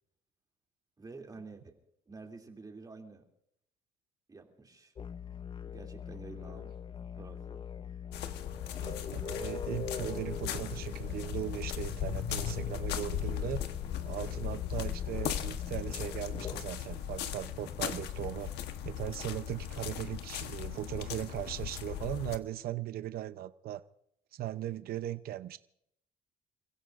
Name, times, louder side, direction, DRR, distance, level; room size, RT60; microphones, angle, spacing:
voice 1, 1.0-1.8 2.1-3.3 4.3-4.9 5.7-6.7 7.2-7.6, right 3 dB, 20° right, 2.8 m, -49 dB
sound 1, 5.0-16.6, left 7 dB, 30° left, 0.7 m, -42 dB
sound 2, 8.1-22.4, left 10 dB, 80° left, 1.2 m, -38 dB
voice 2, 8.8-13.6 14.0-18.5 18.8-23.8 24.3-25.6, right 13 dB, 65° right, 0.7 m, -38 dB
30.0 x 16.0 x 2.6 m
cardioid pair, 110°, 17 cm